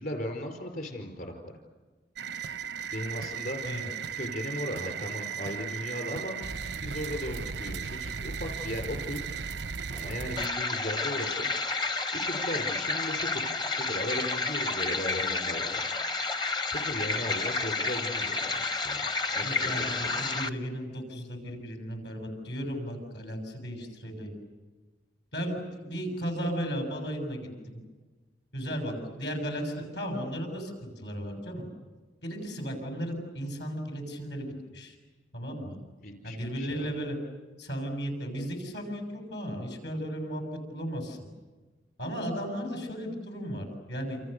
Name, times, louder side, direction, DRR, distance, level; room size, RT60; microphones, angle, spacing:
voice 1, 0.0-1.5 2.9-3.6 4.2-6.4 6.8-9.2 9.9-11.5 12.1-15.8 16.7-19.0 19.3-20.0 36.0-36.9, left 1 dB, 50° left, 4 dB, 4.7 m, -36 dB
sound 1, 2.2-10.5, right 6 dB, 90° right, 0.7 m, -36 dB
sound 2, 10.4-20.5, left 3 dB, 25° left, 0.8 m, -30 dB
voice 2, 19.4-24.3 25.3-27.8 28.5-31.7 32.2-35.0 35.3-35.8 36.2-37.2 37.6-41.2 42.0-44.2, equal, 80° left, 4 dB, 7.2 m, -35 dB
28.5 x 28.5 x 6.8 m, 1.3 s
head